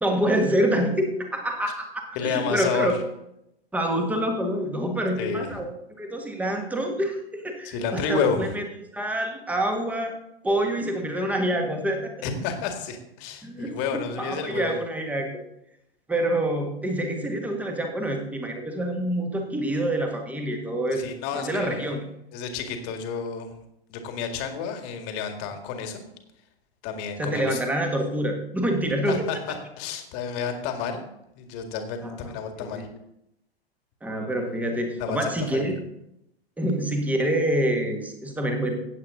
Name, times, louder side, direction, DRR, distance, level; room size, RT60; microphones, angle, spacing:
voice 1, 0.0-2.9 3.7-8.6 8.9-10.1 10.4-12.1 13.4-15.3 16.1-22.0 27.2-29.4 32.0-32.8 34.0-35.8 36.6-38.8, right 1 dB, 5° right, 3 dB, 1.7 m, -27 dB
voice 2, 2.2-2.9 5.2-5.6 7.6-8.4 12.2-14.7 20.9-21.9 22.3-23.5 23.9-26.0 26.8-27.6 29.1-31.1 31.4-32.9 35.0-35.8, left 6 dB, 35° left, 5 dB, 2.0 m, -30 dB
15.5 x 8.7 x 3.8 m, 0.82 s
figure-of-eight pair, 105°, 32 cm